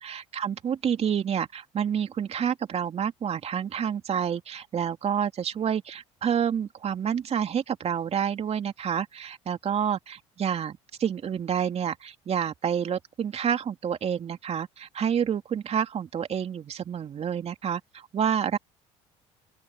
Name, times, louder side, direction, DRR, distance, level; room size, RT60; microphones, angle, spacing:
voice 1, 0.0-18.6, right 8 dB, 45° right, 2.7 m, -28 dB
open air
hypercardioid pair, 65°, 15 cm